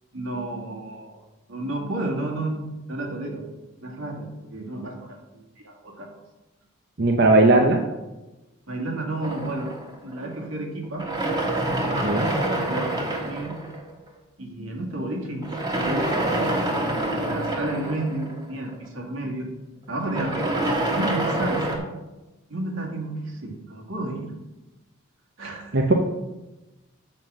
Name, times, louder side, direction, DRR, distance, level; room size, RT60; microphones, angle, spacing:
voice 1, 0.1-1.2 1.5-3.4 3.8-6.1 8.7-9.7 10.0-11.1 11.8-13.6 14.4-19.5 19.9-20.6 20.9-21.8 22.5-24.3 25.4-25.8, right 2 dB, 80° right, 0 dB, 2.0 m, -32 dB
voice 2, 7.0-7.8 12.0-12.3 25.7-25.9, right 2 dB, 50° right, 2 dB, 0.7 m, -17 dB
sound 1, 9.2-10.4 10.9-14.1 15.4-18.9 19.9-21.8, right 1 dB, 20° right, 1.3 m, -27 dB
7.6 x 5.6 x 6.2 m, 1.1 s
head